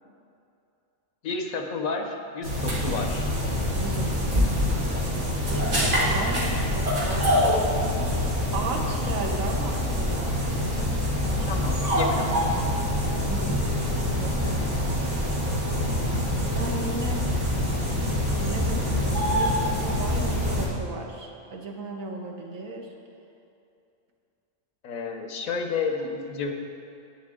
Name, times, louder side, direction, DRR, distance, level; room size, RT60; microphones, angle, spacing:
voice 1, 1.2-3.3 11.4-12.6 24.8-26.5, left 4 dB, 85° left, 4 dB, 1.3 m, -31 dB
sound 1, 2.4-20.7, left 1 dB, 60° right, 2.4 m, -25 dB
voice 2, 3.8-4.4 5.4-7.6 8.5-10.3 11.3-11.5 13.3-14.8 16.5-17.3 18.4-22.9, right 2 dB, 75° right, 1 dB, 1.5 m, -35 dB
10.0 x 9.5 x 3.7 m, 2.6 s
omnidirectional pair, 1.4 m